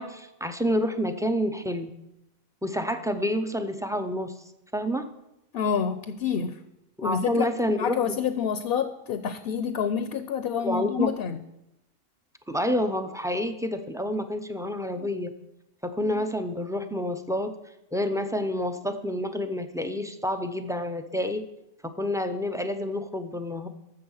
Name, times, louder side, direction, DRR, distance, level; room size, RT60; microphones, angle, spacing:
voice 1, 0.0-1.9 2.6-4.3 4.7-5.1 7.0-8.0 10.6-11.1 12.5-15.3 15.8-17.6 17.9-21.5 21.8-23.7, left 1 dB, 5° right, 0.4 m, -28 dB
voice 2, 5.5-6.6 7.0-11.4, left 7 dB, 60° left, 0.8 m, -28 dB
13.5 x 7.0 x 5.6 m
omnidirectional pair, 1.3 m